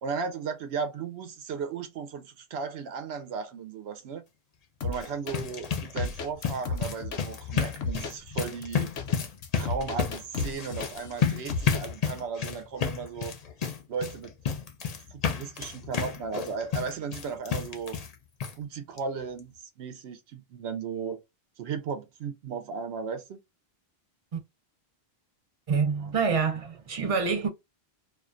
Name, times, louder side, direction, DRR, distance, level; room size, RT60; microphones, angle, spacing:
voice 1, 0.0-4.2 4.8-8.9 9.6-13.4 13.9-14.3 15.1-18.0 18.6-21.2 21.6-23.4 26.0-26.1, right 5 dB, 85° right, 0.8 m, -35 dB
sound 1, 4.8-5.4 5.7-7.2 7.8-8.1 8.6-11.2 11.5-11.8, left 3 dB, 85° left, 0.9 m, -34 dB
sound 2, 4.9-18.1 18.4-18.5 19.0-19.1 19.4-19.5, left 7 dB, 50° left, 0.5 m, -31 dB
voice 2, 25.7-27.5, right 5 dB, 40° right, 0.6 m, -26 dB
2.4 x 2.2 x 2.4 m
omnidirectional pair, 1.1 m